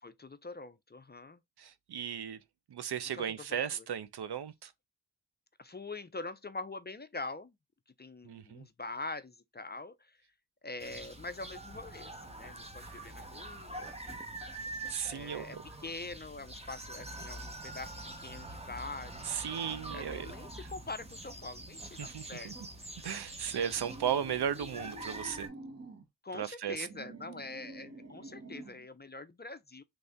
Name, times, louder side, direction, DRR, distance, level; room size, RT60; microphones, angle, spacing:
voice 1, 0.0-1.4 3.1-3.6 5.6-7.5 8.0-10.2 10.6-14.4 15.1-15.6 15.8-22.5 26.2-29.8, left 3 dB, 25° left, 0.5 m, -44 dB
voice 2, 1.6-2.4 2.7-4.7 8.2-8.7 14.9-15.6 19.3-20.3 22.0-22.5 23.0-25.5 26.3-26.9, right 8 dB, 65° right, 0.7 m, -36 dB
sound 1, 10.8-25.5, right 2 dB, 15° right, 1.0 m, -45 dB
sound 2, 23.7-26.1 26.6-28.9, right 1 dB, 35° right, 1.1 m, -48 dB
3.3 x 2.5 x 3.4 m
cardioid pair, 40°, 42 cm